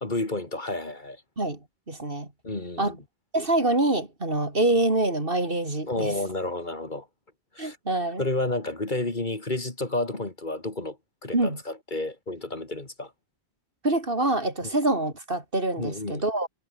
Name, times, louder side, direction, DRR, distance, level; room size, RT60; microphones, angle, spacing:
voice 1, 0.0-1.2 2.4-3.0 5.9-7.1 7.5-7.8 8.2-11.0 11.2-13.1 14.6-14.7 15.8-16.2, left 2 dB, 45° left, 3.0 m, -31 dB
voice 2, 1.9-2.3 2.8-3.0 3.3-6.2 7.6-8.2 11.3-11.6 13.8-16.5, right 2 dB, 55° right, 4.3 m, -25 dB
omnidirectional pair, 1.1 m